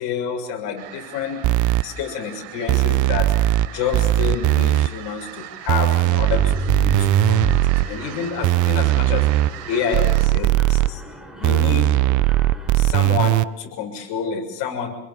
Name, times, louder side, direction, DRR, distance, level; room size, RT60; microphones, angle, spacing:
voice 1, 0.0-1.4 1.8-3.3 3.7-9.3 9.7-11.0 11.4-12.0 12.7-14.9, left 7 dB, 55° left, 4 dB, 7.0 m, -28 dB
sound 1, 0.8-10.3, right 12 dB, 65° right, 7.8 m, -39 dB
sound 2, 1.4-1.8 2.7-3.7 3.9-4.9 5.7-7.8 8.4-9.5 9.9-10.9 11.4-13.4, right 15 dB, 40° right, 0.8 m, -18 dB
Mechanisms, 6.2-12.9, right 1 dB, ahead, 5.7 m, -31 dB
27.5 x 22.0 x 7.1 m, 0.90 s
supercardioid pair, 100°, 48 cm